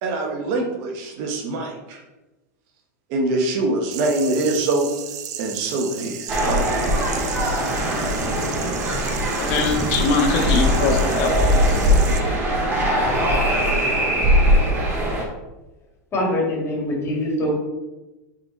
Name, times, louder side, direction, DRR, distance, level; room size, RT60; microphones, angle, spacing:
voice 1, 0.0-2.0 3.1-4.9 5.4-6.9, right 2 dB, 60° right, 2 dB, 1.1 m, -24 dB
sound 1, 3.9-12.2, right 9 dB, 75° right, 0.7 m, -35 dB
sound 2, 6.3-15.2, equal, 25° right, 1.9 m, -20 dB
voice 2, 9.4-11.8, left 4 dB, 60° left, 2 dB, 1.4 m, -23 dB
voice 3, 16.1-17.6, left 1 dB, 30° left, -2 dB, 2.2 m, -23 dB
5.5 x 4.0 x 4.5 m, 1.1 s
supercardioid pair, 125°, 9 cm